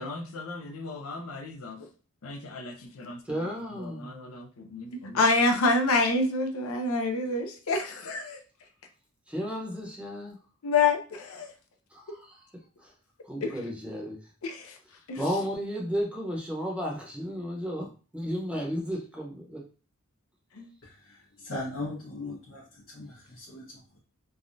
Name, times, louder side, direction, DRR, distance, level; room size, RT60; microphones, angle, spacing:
voice 1, 0.0-1.9 2.2-3.2 4.0-8.4 10.6-11.5 13.4-13.5 14.4-14.8 15.1-15.2 20.6-20.7, left 3 dB, 80° left, 4 dB, 0.6 m, -28 dB
voice 2, 3.2-4.1 9.3-10.4 11.9-12.5 12.8-12.9 13.2-14.2 15.2-19.6, equal, 5° right, -2 dB, 0.8 m, -33 dB
voice 3, 20.8-24.0, left 2 dB, 65° left, -7 dB, 1.0 m, -39 dB
3.3 x 2.2 x 2.6 m, 0.36 s
head